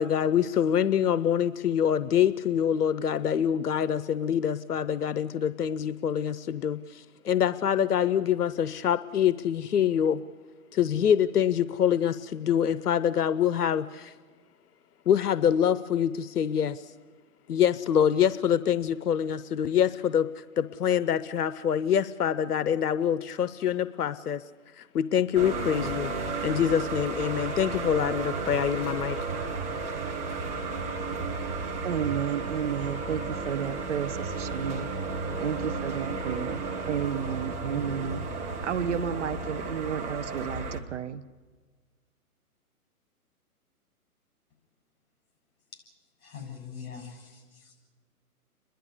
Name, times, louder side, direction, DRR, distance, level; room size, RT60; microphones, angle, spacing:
voice 1, 0.0-10.2 10.7-14.1 15.1-16.9 17.5-24.4 24.8-26.1 26.4-29.2, left 9 dB, 90° left, 15 dB, 0.7 m, -25 dB
sound 1, 25.3-40.8, right 4 dB, 15° right, 1.4 m, -33 dB
voice 2, 31.8-34.9 35.4-41.2, right 8 dB, 50° right, 13 dB, 0.7 m, -32 dB
voice 3, 46.2-47.8, left 7 dB, 45° left, 2 dB, 7.6 m, -43 dB
29.5 x 11.5 x 9.9 m, 1.4 s
hypercardioid pair, 145°, 45 cm